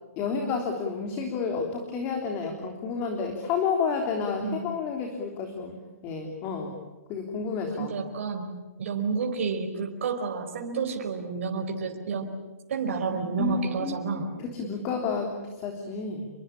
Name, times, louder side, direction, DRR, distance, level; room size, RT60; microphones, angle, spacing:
voice 1, 0.2-5.8 6.0-6.8 7.1-7.9 13.1-16.3, left 5 dB, 25° left, 3 dB, 3.5 m, -30 dB
voice 2, 7.8-8.5 8.8-12.3 12.7-14.4, right 5 dB, 55° right, 2 dB, 4.5 m, -30 dB
28.5 x 23.5 x 8.7 m, 1.2 s
hypercardioid pair, 155°, 9 cm